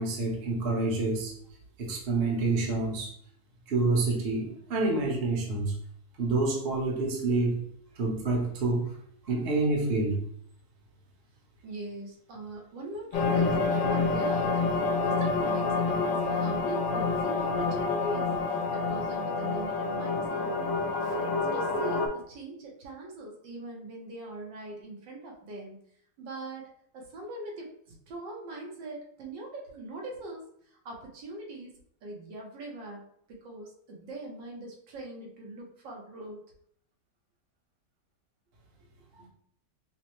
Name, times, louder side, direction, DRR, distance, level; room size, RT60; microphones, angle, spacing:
voice 1, 0.0-1.3 1.8-3.1 3.7-5.7 6.2-7.6 7.9-8.9 9.3-10.2, right 3 dB, 40° right, -2 dB, 1.0 m, -27 dB
voice 2, 11.6-14.6 15.0-20.6 20.9-25.8 26.2-31.7 32.0-36.4 39.2-39.3, right 1 dB, 80° right, -2 dB, 1.6 m, -41 dB
sound 1, 13.1-22.1, left 4 dB, 85° left, 1.4 m, -28 dB
5.7 x 2.1 x 3.0 m, 0.65 s
omnidirectional pair, 1.9 m